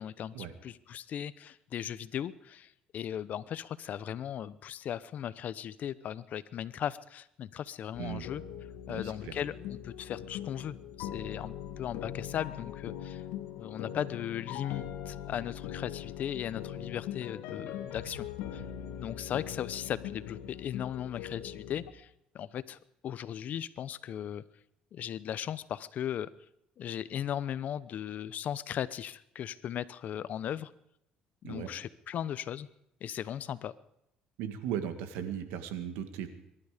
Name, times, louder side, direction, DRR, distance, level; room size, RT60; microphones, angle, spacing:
voice 1, 0.0-8.4 8.9-13.2 13.6-18.3 18.5-18.6 19.0-22.1 22.3-22.8 23.0-24.4 24.9-26.3 26.8-30.7 31.4-32.7 33.0-33.7, left 10 dB, 55° left, 17 dB, 0.8 m, -37 dB
sound 1, 7.9-21.9, left 10 dB, 90° left, 1.7 m, -41 dB
voice 2, 8.9-9.4 31.4-31.7 34.4-36.3, right 9 dB, 90° right, 9 dB, 1.9 m, -37 dB
23.0 x 12.5 x 5.1 m, 0.79 s
cardioid pair, 100°, 3 cm